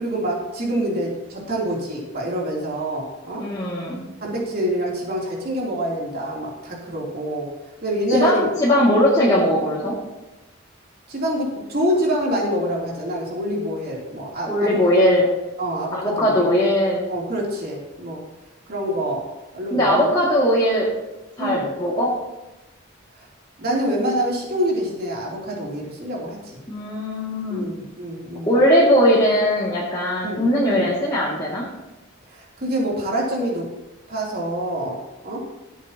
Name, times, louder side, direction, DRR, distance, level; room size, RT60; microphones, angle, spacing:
voice 1, 0.0-3.4 4.2-7.5 7.8-8.5 11.1-14.8 15.6-16.4 17.1-18.2 18.7-19.2 19.5-20.2 21.4-21.7 23.6-26.6 27.5-28.5 30.2-30.9 32.3-33.7 34.1-35.0 35.2-35.4, equal, 50° right, -3 dB, 3.2 m, -26 dB
voice 2, 3.4-4.0 8.1-10.0 14.5-15.3 15.9-17.0 19.7-20.9 21.4-22.1 26.7-27.6 28.5-31.6, equal, 20° left, -7 dB, 2.3 m, -19 dB
15.0 x 8.5 x 2.9 m, 1.0 s
head